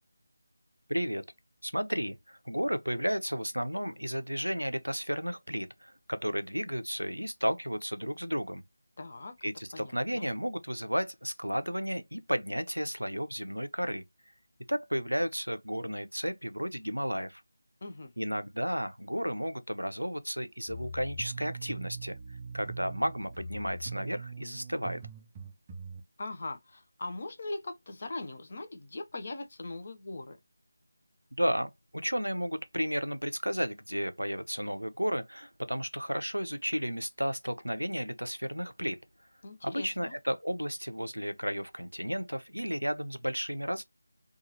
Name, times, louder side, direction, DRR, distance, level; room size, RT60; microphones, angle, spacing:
voice 1, 0.9-1.2 1.6-8.6 9.4-14.0 14.7-17.4 18.2-22.2 22.5-25.0 31.4-39.0 39.6-43.8, equal, 90° right, 0.4 m, -33 dB
voice 2, 9.0-9.4 9.7-10.3 17.8-18.1 26.2-30.4 39.4-40.2, left 2 dB, 40° left, 0.5 m, -40 dB
sound 1, 20.7-26.0, right 3 dB, 15° right, 0.4 m, -42 dB
2.9 x 2.3 x 2.6 m
figure-of-eight pair, 160°, 0 cm